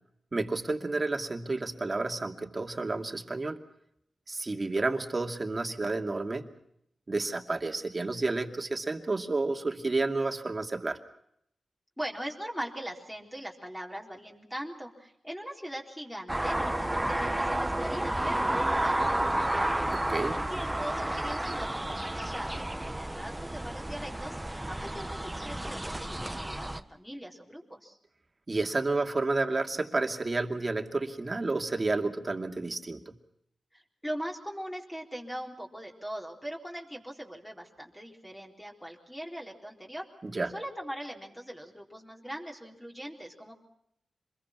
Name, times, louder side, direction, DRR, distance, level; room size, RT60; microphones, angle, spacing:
voice 1, 0.3-3.6 4.3-6.5 7.1-11.0 19.9-20.3 28.5-33.1 40.2-40.5, right 3 dB, 35° right, 5 dB, 2.5 m, -30 dB
voice 2, 12.0-19.9 20.2-28.0 33.7-40.1 40.5-43.5, equal, 5° left, -1 dB, 4.0 m, -41 dB
sound 1, 16.3-26.8, right 1 dB, 15° right, 1.3 m, -31 dB
26.5 x 22.0 x 5.9 m, 0.74 s
cardioid pair, 70°, 0 cm